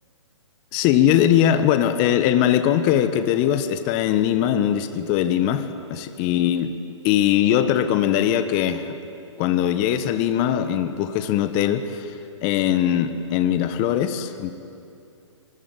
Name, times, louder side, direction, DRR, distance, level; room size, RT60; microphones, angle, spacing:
voice 1, 0.7-6.7 7.0-9.0 9.4-12.1 12.4-14.5, left 10 dB, 30° left, 10 dB, 1.3 m, -21 dB
25.5 x 21.0 x 9.3 m, 2.7 s
figure-of-eight pair, 125°, 16 cm